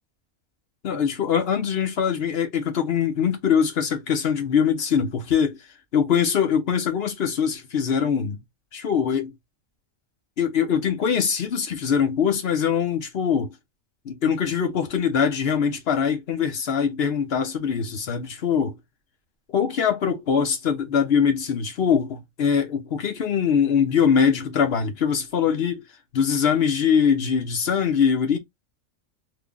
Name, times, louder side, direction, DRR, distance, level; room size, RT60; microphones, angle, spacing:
voice 1, 0.8-5.6 5.9-8.4 8.7-9.3 10.4-13.5 14.0-18.8 19.5-25.8 26.1-28.4, left 7 dB, 50° left, 1.0 m, -22 dB
3.2 x 2.2 x 3.6 m
omnidirectional pair, 1.4 m